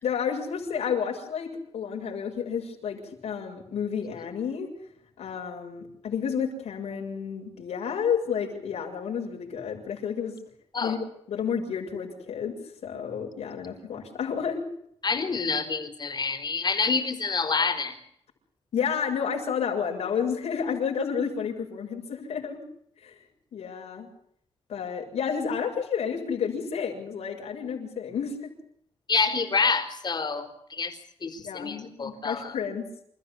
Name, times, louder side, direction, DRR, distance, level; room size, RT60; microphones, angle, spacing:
voice 1, 0.0-4.7 5.2-10.4 10.8-11.0 11.3-14.6 18.7-22.6 23.0-23.2 23.5-24.1 24.7-28.5 31.4-33.0, left 7 dB, 85° left, 1 dB, 7.2 m, -31 dB
voice 2, 15.0-18.0 29.1-31.0 31.2-32.6, left 4 dB, 45° left, 8 dB, 4.1 m, -27 dB
28.5 x 14.5 x 8.3 m, 0.71 s
cardioid pair, 95°, 11 cm